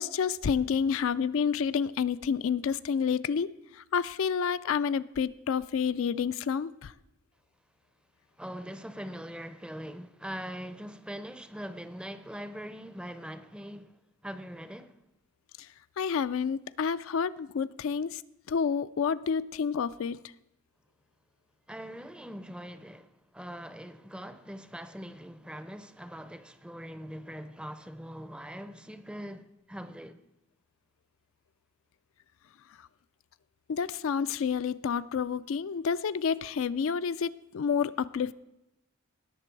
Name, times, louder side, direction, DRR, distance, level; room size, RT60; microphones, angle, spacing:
voice 1, 0.0-3.5 3.9-6.9 16.0-18.2 18.5-20.2 33.7-38.3, left 6 dB, 65° left, 0.4 m, -29 dB
voice 2, 8.4-14.0 14.2-14.9 21.7-30.2, equal, 5° right, 0.5 m, -42 dB
19.0 x 6.8 x 4.6 m
head